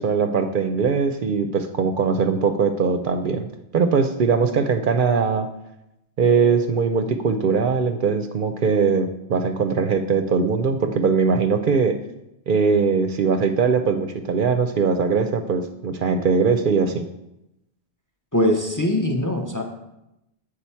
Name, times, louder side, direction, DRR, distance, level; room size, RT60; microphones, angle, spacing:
voice 1, 0.0-3.5 3.7-5.5 6.2-12.0 12.5-17.0, right 5 dB, 60° right, 7 dB, 0.7 m, -21 dB
voice 2, 18.3-19.6, left 1 dB, 25° left, 3 dB, 0.6 m, -21 dB
8.2 x 5.0 x 4.4 m, 0.88 s
omnidirectional pair, 1.0 m